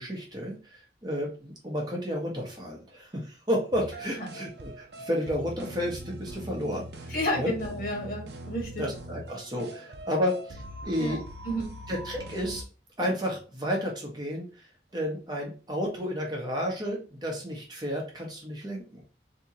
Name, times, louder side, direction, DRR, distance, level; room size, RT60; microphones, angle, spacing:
voice 1, 0.0-7.5 8.8-11.2 11.9-12.6 13.0-19.0, equal, 20° right, -1 dB, 0.8 m, -32 dB
sound 1, 3.7-12.6, right 1 dB, 65° right, 0.6 m, -42 dB
voice 2, 7.1-8.9 11.0-11.2 11.4-11.7, equal, 50° left, -1 dB, 1.4 m, -31 dB
3.6 x 2.8 x 2.8 m, 0.36 s
head